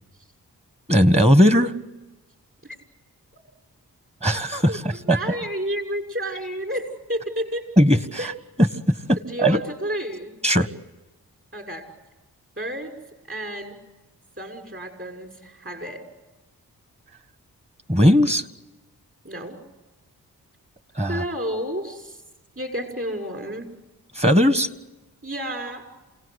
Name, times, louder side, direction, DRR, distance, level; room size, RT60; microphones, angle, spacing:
voice 1, 0.9-1.7 4.2-5.2 7.8-8.3 8.6-9.6 10.4-10.7 17.9-18.5 20.9-21.2 24.1-24.7, equal, 15° right, 12 dB, 1.6 m, -18 dB
voice 2, 4.7-7.7 8.2-8.3 9.3-10.4 11.5-11.8 12.6-12.9 13.3-13.8 14.4-16.0 19.2-19.6 21.1-22.2 22.6-23.7 25.2-25.8, equal, 35° right, 3 dB, 6.3 m, -31 dB
28.0 x 18.5 x 8.2 m, 1.1 s
supercardioid pair, 45°, 37 cm